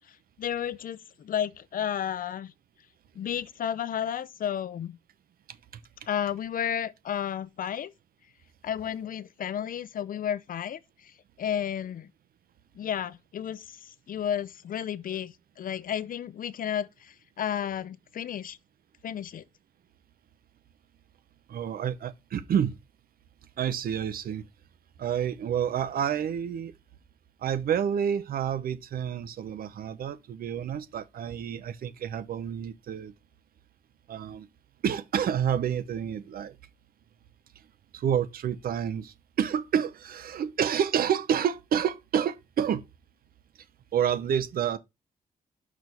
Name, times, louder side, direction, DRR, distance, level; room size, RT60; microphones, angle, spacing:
voice 1, 0.4-2.5 3.2-5.0 6.1-7.9 8.6-11.1 11.4-12.1 12.8-18.6 19.0-19.4, left 9 dB, 70° left, 0.6 m, -32 dB
voice 2, 21.5-22.8 23.6-24.5 25.0-26.7 27.4-33.1 34.1-34.5 34.8-36.6 37.9-42.9 43.9-44.8, right 8 dB, 85° right, 0.8 m, -29 dB
6.1 x 4.9 x 5.4 m
cardioid pair, 80°, 15 cm